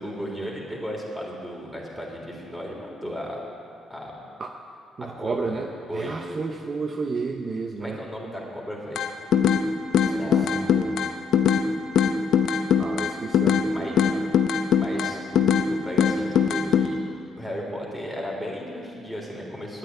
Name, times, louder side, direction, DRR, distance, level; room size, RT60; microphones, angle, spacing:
voice 1, 0.0-3.4 3.9-4.1 5.0-5.5 5.9-6.2 7.8-9.0 10.1-10.5 13.7-14.0 14.8-17.0 17.4-19.8, equal, 5° right, -2 dB, 3.5 m, -35 dB
voice 2, 5.0-8.0 10.0-11.1 12.8-14.3, right 4 dB, 40° right, 4 dB, 0.7 m, -32 dB
sound 1, 9.0-9.6 9.9-11.7 12.0-13.7 14.0-15.7 16.0-16.9, left 8 dB, 70° left, 0.7 m, -20 dB
9.9 x 9.1 x 9.7 m, 2.5 s
cardioid pair, 90°, 0 cm